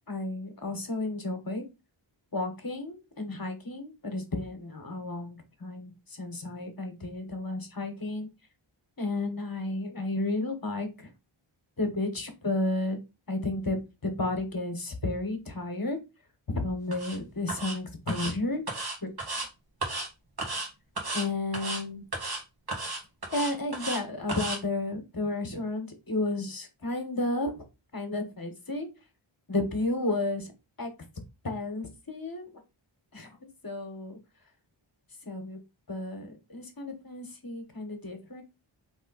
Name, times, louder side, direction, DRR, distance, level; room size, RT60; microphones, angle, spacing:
voice 1, 0.1-1.6 2.3-8.3 9.0-11.1 11.8-13.0 13.3-16.0 16.5-18.6 19.0-19.1 21.1-22.0 23.3-27.6 27.9-28.9 29.5-30.5 30.8-30.9 31.4-32.5 33.1-33.4 33.6-34.2 35.2-35.6 35.9-38.4, left 2 dB, 45° left, 5 dB, 1.4 m, -32 dB
sound 1, 16.9-17.2 17.5-17.8 18.1-18.3 18.7-19.5 19.8-20.1 20.4-20.7 21.0-21.3 21.5-21.8 22.1-22.4 22.7-24.0 24.3-24.6, right 2 dB, 50° right, 1.7 m, -34 dB
3.7 x 3.4 x 4.0 m, 0.26 s
wide cardioid pair, 55°, 49 cm